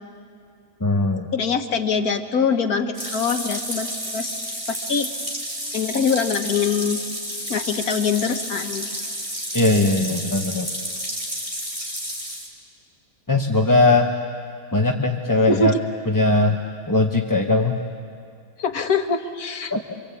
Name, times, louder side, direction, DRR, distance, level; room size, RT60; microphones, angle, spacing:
voice 1, 0.8-1.3 9.5-10.7 13.3-14.1 14.7-15.7 16.1-16.6 16.9-17.8 19.7-19.9, left 2 dB, 15° left, 2 dB, 0.8 m, -19 dB
voice 2, 1.3-4.4 4.7-5.1 5.7-7.0 7.5-8.9 15.5-15.8 18.6-19.7, left 5 dB, 80° left, 6 dB, 1.8 m, -23 dB
sound 1, 2.9-12.5, equal, 20° right, 3.8 m, -31 dB
26.5 x 24.5 x 8.5 m, 2.3 s
omnidirectional pair, 1.6 m